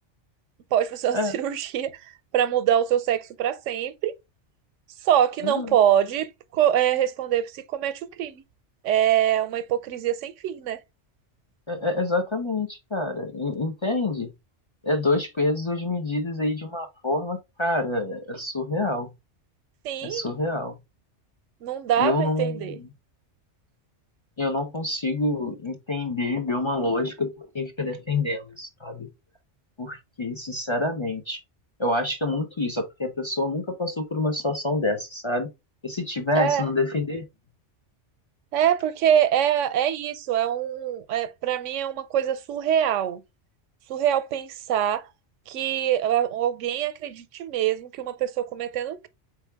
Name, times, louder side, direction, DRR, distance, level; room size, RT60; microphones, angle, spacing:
voice 1, 0.7-4.1 5.0-8.4 8.8-10.8 19.8-20.3 21.6-22.8 36.3-36.7 38.5-43.2 43.9-45.1 45.5-49.1, right 10 dB, 90° right, 0.9 m, -24 dB
voice 2, 5.4-5.7 11.7-14.3 14.8-19.1 20.0-20.8 22.0-22.9 24.4-29.1 29.8-31.4 31.8-35.5 35.8-37.2, left 2 dB, 35° left, 0.5 m, -27 dB
4.4 x 3.4 x 3.3 m
omnidirectional pair, 1.2 m